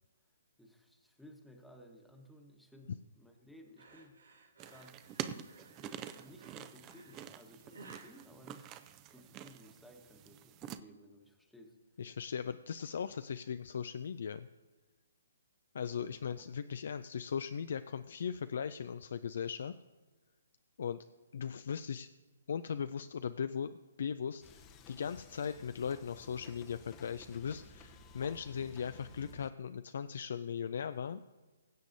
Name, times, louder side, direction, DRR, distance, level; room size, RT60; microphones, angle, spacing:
voice 1, 0.6-4.2 4.6-5.0 5.6-8.8 9.1-11.8 16.0-16.4, equal, ahead, 3 dB, 1.2 m, -57 dB
sound 1, 3.8-9.3, right 3 dB, 80° right, 2.8 m, -58 dB
sound 2, 4.6-10.8, right 10 dB, 25° right, 0.5 m, -47 dB
voice 2, 12.0-14.5 15.7-19.7 20.8-21.0 21.3-22.1 22.5-23.7 24.0-31.2, left 7 dB, 60° left, 11 dB, 0.4 m, -38 dB
sound 3, 24.4-29.5, left 3 dB, 25° left, 0.7 m, -56 dB
22.5 x 8.1 x 2.7 m, 1.3 s
figure-of-eight pair, 135°, 0 cm